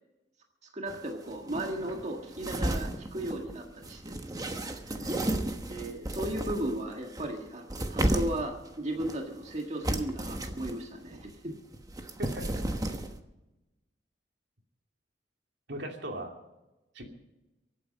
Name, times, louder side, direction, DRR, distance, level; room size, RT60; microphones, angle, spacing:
voice 1, 0.6-5.1 5.7-11.6, right 1 dB, 40° right, 2 dB, 1.7 m, -36 dB
sound 1, 0.9-1.0 1.3-6.8 7.2-8.5 8.9-9.6 9.8-10.8 11.0-13.2, right 1 dB, 20° right, 1.2 m, -33 dB
voice 2, 12.2-12.8 15.7-16.3 16.9-17.1, right 1 dB, 75° right, 2 dB, 2.7 m, -38 dB
24.0 x 9.3 x 5.3 m, 1.0 s
head